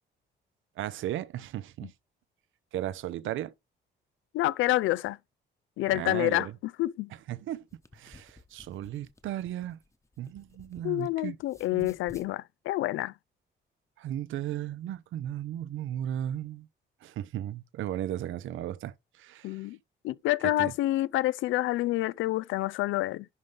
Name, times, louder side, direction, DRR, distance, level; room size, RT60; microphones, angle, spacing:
voice 1, 0.8-1.9 2.7-3.5 5.9-6.5 7.3-7.6 7.9-9.8 10.2-11.4 11.7-11.9 14.0-16.7 17.0-19.6 20.6-20.7, right 12 dB, 80° right, 0.7 m, -35 dB
voice 2, 4.3-5.2 5.8-6.5 6.8-7.1 10.8-13.1 19.4-19.8 20.0-23.3, left 16 dB, 80° left, 0.4 m, -28 dB
sound 1, 7.6-11.1 11.4-12.3, left 2 dB, 15° left, 1.0 m, -55 dB
11.0 x 3.9 x 3.3 m
cardioid pair, 90°, 20 cm